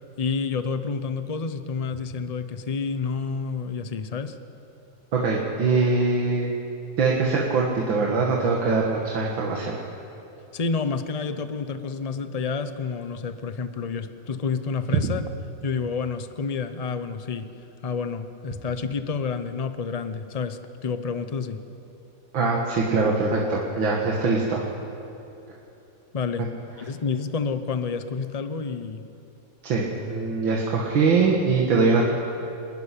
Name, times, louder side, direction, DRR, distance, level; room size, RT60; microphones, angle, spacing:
voice 1, 0.2-4.4 10.5-15.2 15.6-17.5 17.8-21.6 26.1-26.5 26.8-29.0, left 5 dB, 55° left, 10 dB, 0.4 m, -29 dB
voice 2, 5.1-6.5 7.0-9.8 22.3-24.7 29.6-32.1, right 4 dB, 85° right, -2 dB, 2.5 m, -22 dB
26.5 x 12.0 x 10.0 m, 2.9 s
omnidirectional pair, 2.1 m